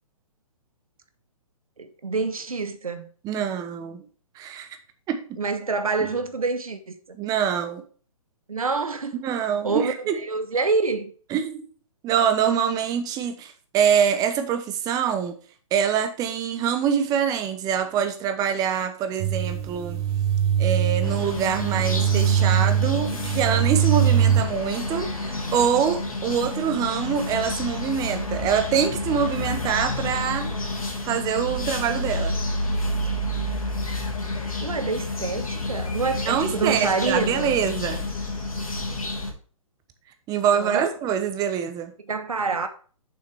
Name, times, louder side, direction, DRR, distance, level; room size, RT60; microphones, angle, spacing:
voice 1, 1.8-3.1 5.4-6.9 8.5-9.2 9.6-11.1 34.6-37.6 40.5-40.9 42.1-42.7, right 4 dB, 90° right, 1.3 m, -27 dB
voice 2, 3.2-4.0 4.4-4.7 5.1-5.4 7.2-7.8 9.2-10.1 11.3-11.6 12.0-15.4 15.7-20.0 20.6-30.5 31.0-32.4 36.3-38.1 40.3-41.9, right 8 dB, 20° right, 1.0 m, -25 dB
sound 1, 19.2-24.4, right 9 dB, 45° right, 1.8 m, -22 dB
sound 2, 21.0-39.3, left 1 dB, 85° left, 2.3 m, -29 dB
7.1 x 5.7 x 4.8 m
hypercardioid pair, 135°, 18 cm